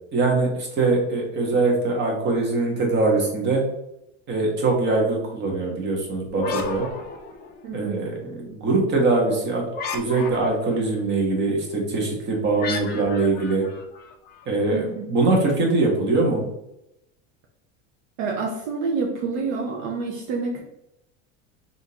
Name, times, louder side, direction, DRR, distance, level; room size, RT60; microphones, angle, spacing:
voice 1, 0.1-3.6 4.3-6.9 7.7-9.6 9.9-13.7 14.5-16.4, right 3 dB, 30° right, 0 dB, 1.0 m, -22 dB
sound 1, 6.3-7.8 9.7-10.8 12.6-14.5, left 5 dB, 30° left, 0.3 m, -33 dB
voice 2, 7.6-8.0 14.7-15.0 18.2-20.6, right 4 dB, 60° right, 1 dB, 0.6 m, -28 dB
3.5 x 2.6 x 2.8 m, 0.85 s
supercardioid pair, 135°, 36 cm